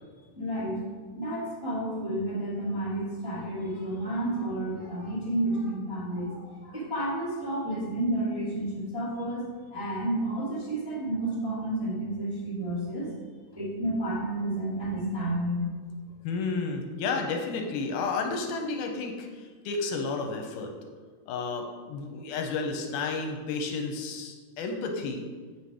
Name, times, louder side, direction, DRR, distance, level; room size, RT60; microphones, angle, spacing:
voice 1, 0.3-0.8 1.1-13.1 13.5-15.7, right 1 dB, 10° right, -9 dB, 1.1 m, -31 dB
voice 2, 16.2-20.7 21.3-25.3, left 4 dB, 80° left, 3 dB, 2.2 m, -32 dB
8.1 x 4.4 x 4.8 m, 1.5 s
omnidirectional pair, 3.8 m